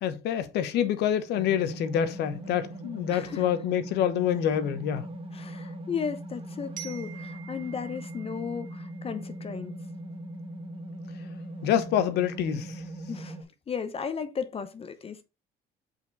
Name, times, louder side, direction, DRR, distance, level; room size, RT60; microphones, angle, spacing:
voice 1, 0.0-5.1 11.6-12.8, left 9 dB, 80° left, 1.0 m, -27 dB
sound 1, 1.3-13.4, right 1 dB, 35° right, 1.4 m, -40 dB
voice 2, 3.1-3.4 5.3-9.8 13.1-15.2, left 6 dB, 35° left, 0.8 m, -35 dB
Glockenspiel, 6.8-9.6, right 11 dB, 50° right, 1.3 m, -47 dB
5.8 x 4.5 x 3.9 m
cardioid pair, 110°, 17 cm